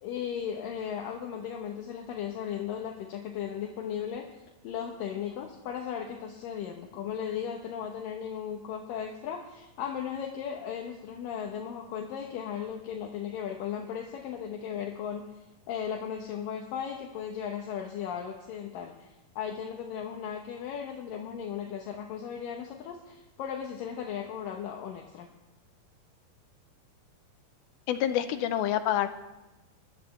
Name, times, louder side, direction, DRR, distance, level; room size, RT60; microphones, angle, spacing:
voice 1, 0.0-15.3 15.7-25.3 28.1-28.3, left 8 dB, 70° left, 1 dB, 2.5 m, -36 dB
voice 2, 27.9-29.1, left 11 dB, 85° left, 10 dB, 2.5 m, -27 dB
21.0 x 12.5 x 3.3 m, 1.0 s
omnidirectional pair, 4.4 m